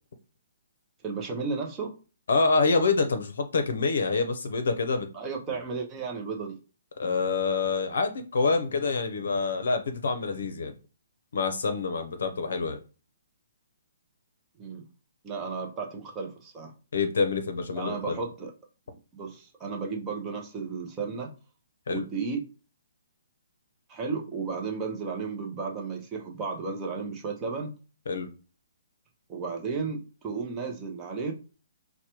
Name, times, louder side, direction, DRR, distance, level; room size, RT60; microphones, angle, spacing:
voice 1, 1.0-1.9 5.1-6.6 14.6-14.8 15.2-16.7 17.7-18.5 19.1-21.3 21.9-22.5 23.9-27.7 29.3-31.3, right 4 dB, 15° right, 1 dB, 0.6 m, -33 dB
voice 2, 2.3-5.1 7.0-10.7 11.3-12.8 16.9-18.2 21.9-22.0 28.1-28.3, left 4 dB, 65° left, 7 dB, 0.6 m, -26 dB
4.7 x 2.1 x 2.9 m, 0.35 s
hypercardioid pair, 175°, 0 cm